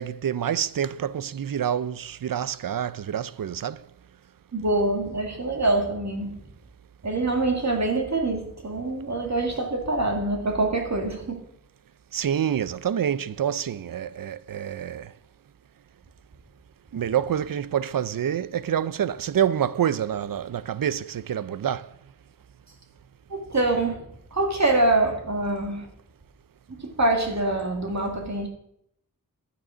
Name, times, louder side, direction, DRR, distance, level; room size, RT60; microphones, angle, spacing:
voice 1, 0.0-3.8 12.1-15.1 16.9-21.9, right 9 dB, 70° right, 0.6 m, -27 dB
voice 2, 4.5-6.4 7.0-11.4 23.3-25.9 26.7-28.5, right 2 dB, 50° right, 2.1 m, -25 dB
11.0 x 9.3 x 6.2 m
wide cardioid pair, 95°, 35 cm